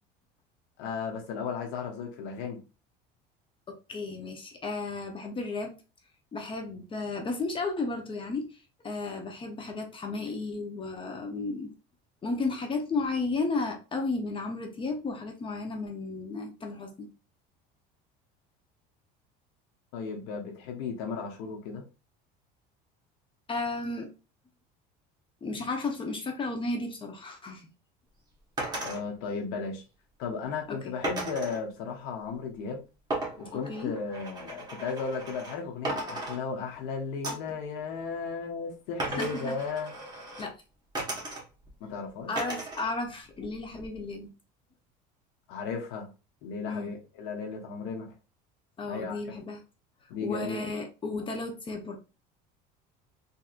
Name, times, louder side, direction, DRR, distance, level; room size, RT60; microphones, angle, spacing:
voice 1, 0.8-2.6 19.9-21.8 28.8-29.8 30.2-32.8 33.4-39.9 41.8-42.3 45.5-46.1 46.4-48.1 48.9-49.3 50.1-50.7, left 5 dB, 80° left, 2 dB, 0.9 m, -35 dB
voice 2, 3.7-5.7 6.3-8.5 8.8-11.7 12.2-17.1 23.5-24.1 25.4-27.7 30.7-30.9 33.7-33.9 39.1-39.6 40.4-40.5 42.3-44.3 46.7-46.9 48.8-49.6 50.2-52.0, left 3 dB, 25° left, 4 dB, 0.7 m, -33 dB
sound 1, 28.6-29.0 31.0-31.6 33.1-35.6 35.8-36.8 37.2-37.6 39.0-40.5 40.9-41.7 42.4-42.9 43.2-44.0, right 2 dB, 20° right, 1.4 m, -36 dB
3.6 x 2.7 x 2.5 m, 0.31 s
cardioid pair, 125°, 20 cm